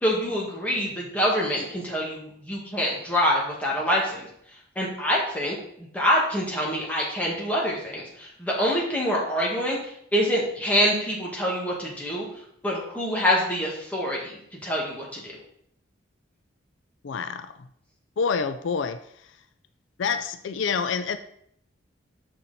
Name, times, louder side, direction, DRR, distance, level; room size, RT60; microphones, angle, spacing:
voice 1, 0.0-4.3 4.8-12.3 12.6-14.3 14.6-15.4, equal, 5° left, -4 dB, 1.8 m, -26 dB
voice 2, 17.0-17.7 18.2-19.3 20.0-21.2, left 5 dB, 80° left, 11 dB, 0.4 m, -28 dB
6.6 x 5.8 x 4.1 m, 0.70 s
head